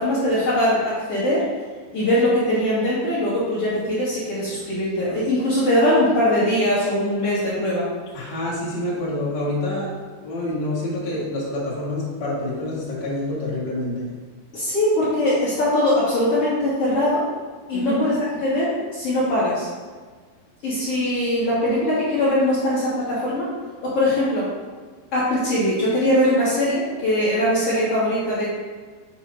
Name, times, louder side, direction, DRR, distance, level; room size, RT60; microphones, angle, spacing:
voice 1, 0.0-1.4 1.9-7.8 14.5-17.2 17.7-19.7 20.6-23.5 23.8-24.5 25.1-28.5, left 1 dB, 90° left, -10 dB, 1.3 m, -21 dB
voice 2, 8.1-9.9 10.2-14.1 17.7-18.0, left 1 dB, 60° left, -8 dB, 1.1 m, -27 dB
7.4 x 6.4 x 2.7 m, 1.5 s
omnidirectional pair, 5.4 m